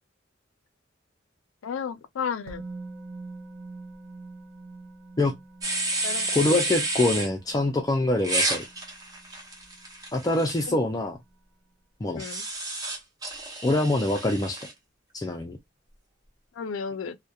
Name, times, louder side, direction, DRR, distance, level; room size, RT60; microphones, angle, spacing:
voice 1, 1.6-2.6 6.0-6.6 10.7-10.8 12.1-12.4 16.6-17.2, left 6 dB, 85° left, 0.4 m, -33 dB
Musical instrument, 2.5-10.4 10.6-10.8, right 3 dB, 55° right, 0.6 m, -45 dB
sound 1, 5.6-7.3 8.2-10.7 12.2-14.7, right 2 dB, 20° right, 0.7 m, -30 dB
voice 2, 6.3-8.6 10.1-11.2 12.0-12.2 13.6-14.7 15.1-15.6, left 2 dB, 20° left, 0.4 m, -25 dB
2.7 x 2.1 x 2.3 m
head